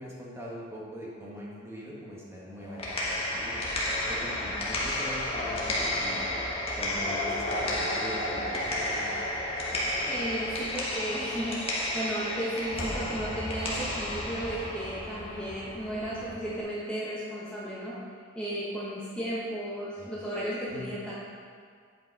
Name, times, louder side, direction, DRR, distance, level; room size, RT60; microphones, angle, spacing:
voice 1, 0.0-3.6 4.1-6.4 6.8-9.1 16.1-16.4 20.0-20.1 20.7-20.9, equal, 15° right, -5 dB, 1.6 m, -41 dB
sound 1, 2.6-16.6, left 1 dB, 30° left, 1.4 m, -32 dB
voice 2, 10.1-18.0 18.3-21.1, right 1 dB, 5° left, -9 dB, 1.2 m, -34 dB
9.3 x 5.3 x 4.7 m, 2.1 s
head